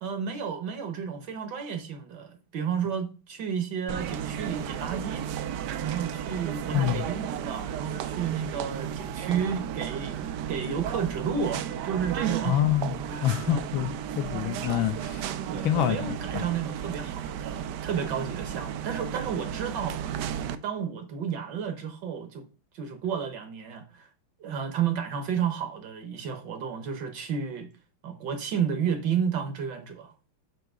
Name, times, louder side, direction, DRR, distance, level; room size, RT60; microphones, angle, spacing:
voice 1, 0.0-5.3 5.8-12.6 13.1-13.6 15.5-20.0 20.6-22.4 22.7-24.1 24.4-27.7 28.0-30.1, right 7 dB, 65° right, 1.3 m, -32 dB
sound 1, 3.9-20.6, right 9 dB, 85° right, 0.9 m, -34 dB
voice 2, 6.7-7.1 12.4-12.9 13.2-15.2 15.6-16.5, left 12 dB, 75° left, 1.3 m, -27 dB
7.7 x 2.8 x 6.0 m
omnidirectional pair, 2.4 m